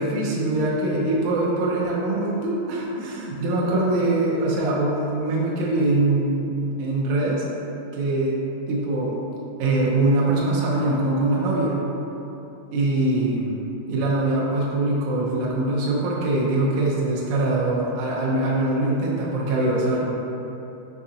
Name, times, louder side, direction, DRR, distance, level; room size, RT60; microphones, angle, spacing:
voice 1, 0.0-7.4 7.9-8.3 8.7-9.2 9.6-11.8 12.7-20.0, right 2 dB, 85° right, -4 dB, 1.7 m, -23 dB
5.8 x 2.7 x 2.4 m, 3.0 s
omnidirectional pair, 3.9 m